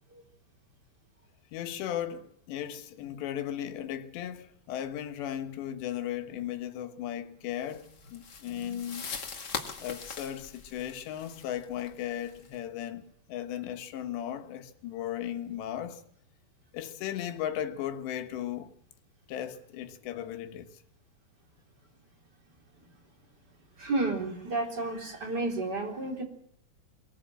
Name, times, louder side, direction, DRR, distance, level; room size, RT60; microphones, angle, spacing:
voice 1, 1.5-9.0 9.8-13.0 13.3-16.0 16.7-18.7 19.3-20.7, left 11 dB, 75° left, 3.6 m, -36 dB
sound 1, 7.7-12.6, left 5 dB, 55° left, 1.1 m, -41 dB
voice 2, 23.8-26.2, right 2 dB, 25° right, 3.7 m, -32 dB
23.5 x 17.5 x 7.7 m
omnidirectional pair, 5.1 m